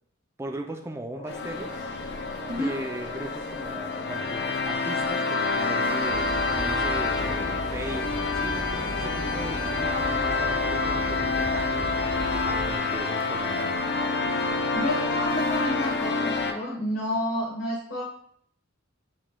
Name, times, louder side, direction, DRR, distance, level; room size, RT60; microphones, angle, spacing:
voice 1, 0.4-1.7 2.6-11.9 12.4-13.8, right 1 dB, 15° right, 4 dB, 0.4 m, -38 dB
sound 1, 1.1-8.7, left 2 dB, 40° left, 1.2 m, -44 dB
sound 2, 1.3-16.5, left 3 dB, 60° left, 0.5 m, -28 dB
voice 2, 2.4-2.7 14.7-18.0, equal, 85° left, -6 dB, 1.2 m, -30 dB
sound 3, 6.1-12.8, equal, 20° left, 1.0 m, -36 dB
7.1 x 3.1 x 2.2 m, 0.65 s
head